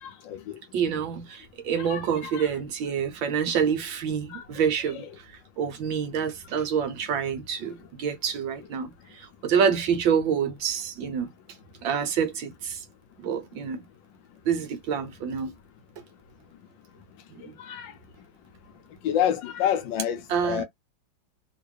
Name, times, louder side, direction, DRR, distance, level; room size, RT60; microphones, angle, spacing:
voice 1, 0.0-0.6 1.8-2.5 4.3-4.4 17.6-17.9 19.0-20.6, left 10 dB, 75° left, 1.2 m, -29 dB
voice 2, 0.7-5.1 5.6-11.3 11.8-12.8 13.2-13.8 14.4-15.5 17.3-17.5 20.3-20.6, right 7 dB, 70° right, 1.5 m, -27 dB
3.5 x 2.4 x 3.2 m
omnidirectional pair, 2.3 m